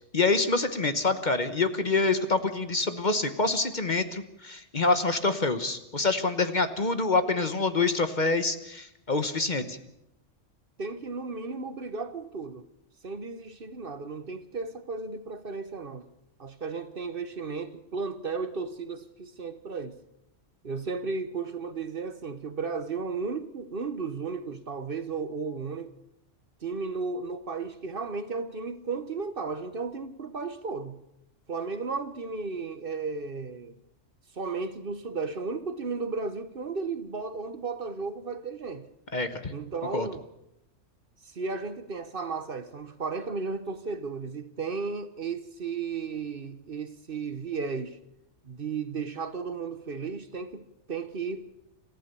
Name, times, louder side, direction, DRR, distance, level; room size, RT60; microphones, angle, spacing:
voice 1, 0.1-9.8 39.1-39.5 39.9-40.1, left 3 dB, 40° left, 1.2 m, -26 dB
voice 2, 10.8-12.7 13.0-16.1 16.4-20.0 20.6-25.9 26.6-31.0 31.5-33.7 34.3-38.9 39.5-40.3 41.2-48.0 48.4-51.5, right 4 dB, 50° right, 1.2 m, -34 dB
27.0 x 14.5 x 6.9 m
omnidirectional pair, 1.3 m